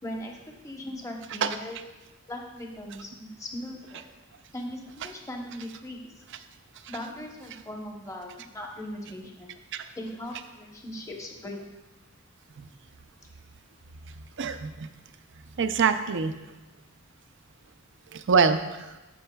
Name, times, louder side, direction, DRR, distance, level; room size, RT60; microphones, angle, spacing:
voice 1, 0.0-1.8 2.3-4.1 4.5-6.1 6.9-9.5 10.0-11.6, left 1 dB, 15° left, 1 dB, 0.9 m, -39 dB
voice 2, 14.4-14.9 15.6-16.3 18.1-19.0, right 5 dB, 60° right, 10 dB, 0.5 m, -24 dB
13.0 x 5.4 x 2.3 m, 1.1 s
head